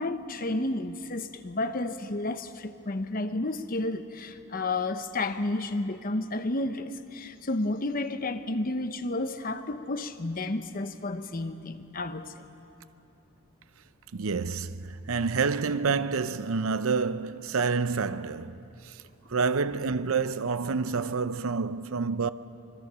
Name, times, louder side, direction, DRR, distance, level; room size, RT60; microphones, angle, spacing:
voice 1, 0.0-12.4, left 2 dB, 40° left, 0.9 m, -31 dB
voice 2, 14.1-19.0 19.3-22.3, right 5 dB, 75° right, 0.6 m, -28 dB
26.0 x 21.5 x 6.9 m
head